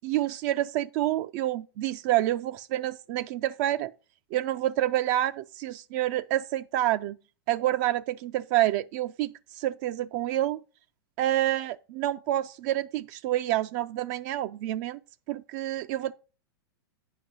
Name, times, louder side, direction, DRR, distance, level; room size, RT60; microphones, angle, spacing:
voice 1, 0.0-3.9 4.3-7.2 7.5-10.6 11.2-15.0 15.3-16.1, right 14 dB, 45° right, 0.3 m, -28 dB
9.2 x 5.2 x 4.6 m
hypercardioid pair, 115°, 13 cm